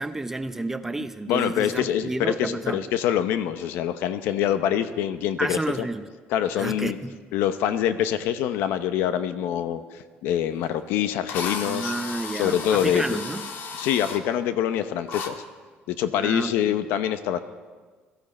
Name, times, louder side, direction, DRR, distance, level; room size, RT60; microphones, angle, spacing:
voice 1, 0.0-2.8 5.4-6.0 6.6-7.2 11.7-13.5 16.2-16.5, right 2 dB, 10° right, 9 dB, 0.6 m, -30 dB
voice 2, 1.3-5.9 6.3-7.0 7.3-11.9 12.4-13.2 13.8-15.4 15.9-17.4, left 10 dB, 80° left, 11 dB, 0.8 m, -25 dB
Drill, 10.6-10.7 11.3-14.2 15.1-15.3, left 5 dB, 60° left, 1.7 m, -34 dB
22.0 x 15.0 x 4.3 m, 1.4 s
cardioid pair, 135°, 4 cm